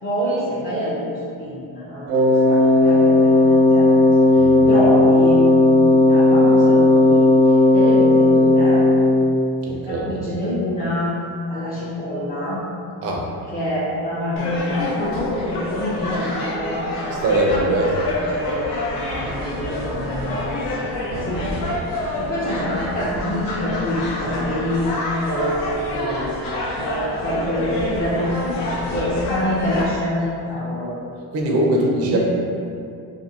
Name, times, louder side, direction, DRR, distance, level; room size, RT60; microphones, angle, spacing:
voice 1, 0.0-8.9 9.7-11.2 11.5-12.6 13.4-15.2 15.5-16.8 17.4-20.4 20.7-20.9 21.2-30.9 32.0-32.2, equal, 20° left, -11 dB, 0.5 m, -26 dB
Wind instrument woodwind instrument, 2.1-9.4, left 2 dB, 80° right, 0.7 m, -14 dB
voice 2, 4.4-4.7 9.7-10.2 13.0-13.2 17.2-17.9 21.1-21.4 31.3-32.2, right 1 dB, 40° right, -2 dB, 0.4 m, -21 dB
sound 1, 14.4-29.9, left 1 dB, 70° left, 0.6 m, -27 dB
2.6 x 2.5 x 2.7 m, 2.5 s
cardioid pair, 130°, 38 cm